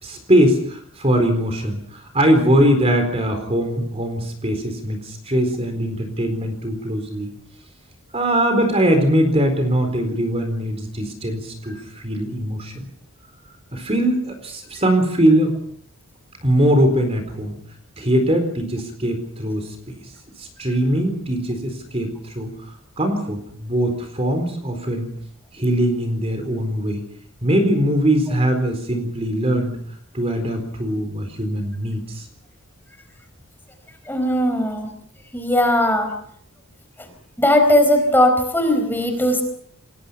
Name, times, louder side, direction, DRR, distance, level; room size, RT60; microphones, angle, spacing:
voice 1, 0.0-7.3 8.1-12.9 13.7-15.5 16.4-17.6 18.0-19.9 20.4-22.5 23.0-25.1 25.5-27.0 27.4-29.8 30.1-32.3, right 1 dB, 25° right, 6 dB, 4.2 m, -21 dB
voice 2, 34.1-34.9 35.3-36.1 37.4-39.4, left 1 dB, 10° left, 6 dB, 4.4 m, -18 dB
27.5 x 20.5 x 5.7 m, 0.64 s
head